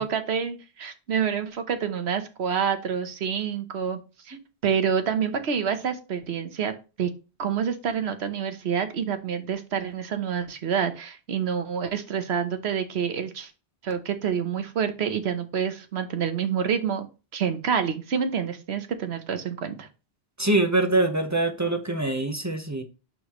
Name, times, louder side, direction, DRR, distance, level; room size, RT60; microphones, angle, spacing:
voice 1, 0.0-4.0 4.3-4.4 4.6-6.7 7.0-7.1 7.4-13.5 13.8-17.1 17.3-19.9, right 7 dB, 90° right, 1.2 m, -27 dB
voice 2, 20.4-22.8, right 2 dB, 20° right, 0.8 m, -24 dB
11.5 x 3.9 x 3.0 m
omnidirectional pair, 1.1 m